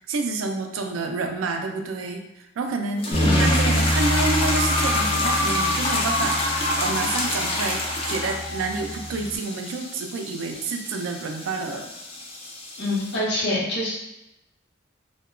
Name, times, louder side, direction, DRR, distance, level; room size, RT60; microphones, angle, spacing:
voice 1, 0.0-2.2 2.6-11.9, right 3 dB, 80° right, 4 dB, 0.3 m, -29 dB
sound 1, 3.0-13.2, left 2 dB, 30° left, 0.3 m, -28 dB
voice 2, 3.1-3.6 12.8-13.9, left 1 dB, 55° left, -4 dB, 0.7 m, -26 dB
Bass guitar, 3.1-9.4, equal, 40° right, 0.6 m, -27 dB
sound 2, 4.5-9.0, left 1 dB, 80° left, 0.9 m, -30 dB
2.7 x 2.2 x 2.4 m, 0.87 s
head